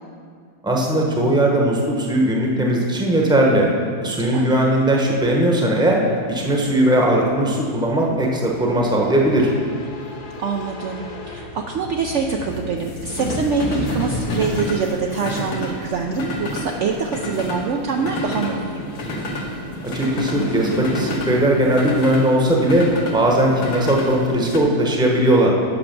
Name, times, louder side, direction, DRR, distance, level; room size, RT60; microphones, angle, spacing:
voice 1, 0.6-3.7 4.0-6.0 6.3-9.5 19.9-22.9 23.1-25.5, right 1 dB, 5° right, -1 dB, 0.9 m, -18 dB
sound 1, 5.2-24.6, left 1 dB, 75° left, 1.6 m, -30 dB
voice 2, 10.4-18.8, right 5 dB, 65° right, 2 dB, 0.8 m, -25 dB
8.4 x 6.2 x 6.0 m, 2.1 s
omnidirectional pair, 1.6 m